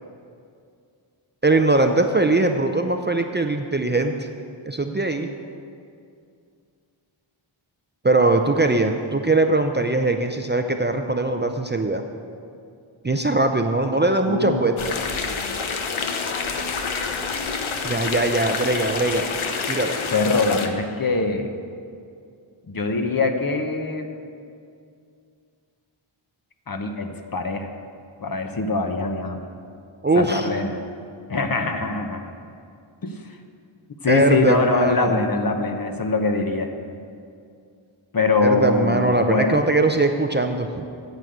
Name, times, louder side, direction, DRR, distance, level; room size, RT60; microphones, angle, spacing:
voice 1, 1.4-4.1 4.7-5.3 8.0-12.0 13.0-15.0 17.8-19.3 19.7-20.0 30.0-30.5 34.1-35.2 38.4-40.8, right 2 dB, 20° right, 5 dB, 0.5 m, -21 dB
voice 2, 14.3-14.6 20.1-21.5 22.7-24.1 26.7-27.7 28.2-29.4 30.1-30.8 31.3-32.2 33.0-33.2 34.0-36.7 38.1-39.6, left 3 dB, 45° left, 5 dB, 1.0 m, -23 dB
sound 1, 14.8-20.7, left 5 dB, 75° left, 0.9 m, -28 dB
9.4 x 6.8 x 7.9 m, 2.4 s
wide cardioid pair, 85°, 49 cm